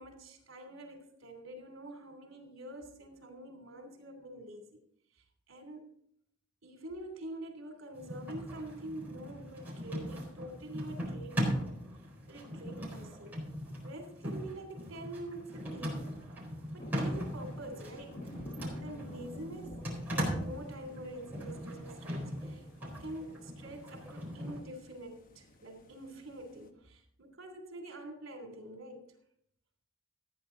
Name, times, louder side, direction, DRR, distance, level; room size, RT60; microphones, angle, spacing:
voice 1, 0.0-4.8 5.5-5.9 6.6-11.8 12.3-13.4 13.8-16.1 16.7-18.3 18.5-19.8 20.1-29.1, right 1 dB, 75° right, 4 dB, 3.0 m, -46 dB
sound 1, 7.9-24.6, equal, 10° right, 4.1 m, -39 dB
sound 2, 16.8-26.7, left 1 dB, 40° left, 0.9 m, -52 dB
15.0 x 9.3 x 3.9 m, 0.69 s
head